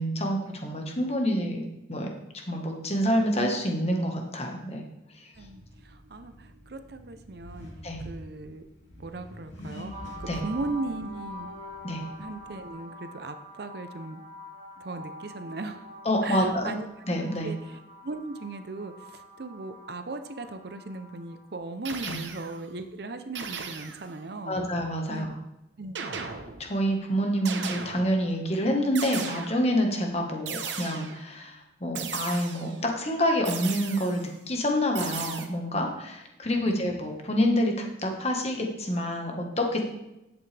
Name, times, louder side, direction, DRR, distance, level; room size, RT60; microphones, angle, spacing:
voice 1, 0.0-1.6 1.9-2.1 2.5-4.8 5.1-5.3 7.8-8.0 10.3-10.4 11.8-12.0 16.0-16.7 17.1-17.5 22.0-22.2 24.5-25.3 26.6-39.8, equal, 35° left, 2 dB, 1.4 m, -27 dB
Accelerating revving vroom, 5.3-12.7, equal, 80° left, 2.6 m, -46 dB
voice 2, 5.4-7.7 8.0-8.6 9.0-11.5 12.2-14.2 14.8-15.9 16.2-16.8 17.4-24.6 25.1-25.3 25.8-26.0 36.6-36.8, right 3 dB, 55° right, 9 dB, 0.7 m, -38 dB
sound 1, 9.9-21.5, equal, 40° right, 3.4 m, -45 dB
sound 2, 21.8-22.6 23.3-24.1 25.9-26.8 27.4-28.3 28.9-29.8 30.5-31.3 31.9-32.8 33.4-34.3 34.9-35.5, right 6 dB, 75° right, 1.0 m, -37 dB
10.5 x 8.1 x 3.4 m, 0.92 s
head